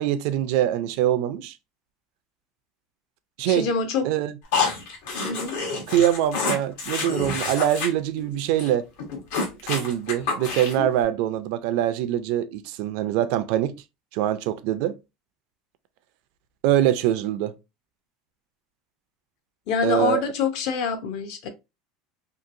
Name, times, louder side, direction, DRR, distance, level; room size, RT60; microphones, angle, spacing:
voice 1, 0.0-1.6 3.4-3.7 4.0-4.3 5.9-8.9 9.6-13.7 14.1-15.0 16.6-17.6 19.8-20.2, right 11 dB, 60° right, 0.3 m, -23 dB
voice 2, 3.5-4.1 5.2-5.6 19.7-21.5, left 5 dB, 50° left, 0.6 m, -25 dB
sound 1, 4.5-7.9 8.2-8.3 8.6-8.7 9.0-10.9, left 4 dB, 75° left, 1.0 m, -28 dB
2.8 x 2.6 x 2.5 m
cardioid pair, 170°, 0 cm